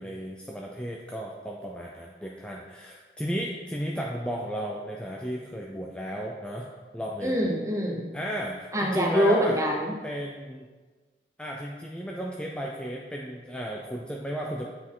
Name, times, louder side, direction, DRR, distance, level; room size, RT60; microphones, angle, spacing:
voice 1, 0.0-6.6 6.9-7.4 8.1-9.6 10.0-10.7 11.4-14.7, equal, 5° left, -2 dB, 0.4 m, -34 dB
voice 2, 7.2-8.1 8.7-9.9, equal, 20° right, 0 dB, 0.8 m, -24 dB
8.2 x 4.2 x 3.7 m, 1.3 s
head